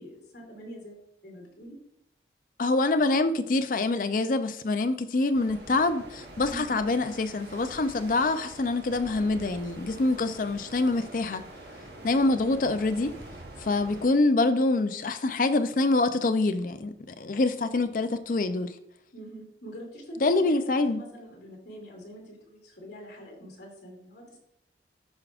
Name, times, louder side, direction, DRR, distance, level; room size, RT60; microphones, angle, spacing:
voice 1, 0.0-1.8 6.5-6.8 12.0-12.5 19.1-24.4, right 1 dB, 70° left, 2.5 m, -44 dB
voice 2, 2.6-11.4 12.0-13.1 13.6-18.7 20.2-21.0, left 2 dB, 50° left, 0.5 m, -25 dB
sound 1, 5.3-14.1, right 1 dB, 65° right, 1.1 m, -45 dB
12.5 x 4.8 x 2.4 m
head